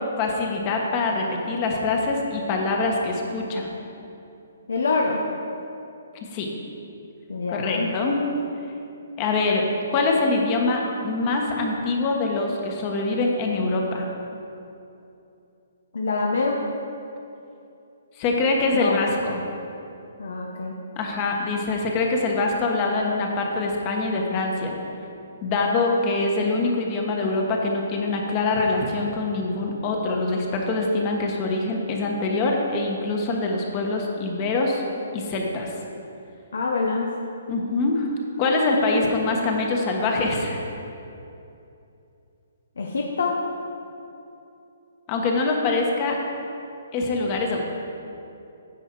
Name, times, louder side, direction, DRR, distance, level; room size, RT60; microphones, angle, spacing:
voice 1, 0.2-3.7 6.3-6.5 7.5-8.2 9.2-9.6 9.9-14.1 18.2-19.4 21.0-24.7 25.4-34.8 35.1-35.7 37.5-38.1 38.4-40.6 45.1-46.2 46.9-47.6, left 3 dB, 30° left, 0 dB, 1.3 m, -24 dB
voice 2, 4.7-5.2 7.3-7.9 15.9-16.6 18.7-19.0 20.2-20.8 36.5-37.1 42.8-43.4, left 3 dB, 80° left, 0 dB, 0.9 m, -25 dB
9.9 x 7.1 x 4.6 m, 2.7 s
hypercardioid pair, 160°, 0 cm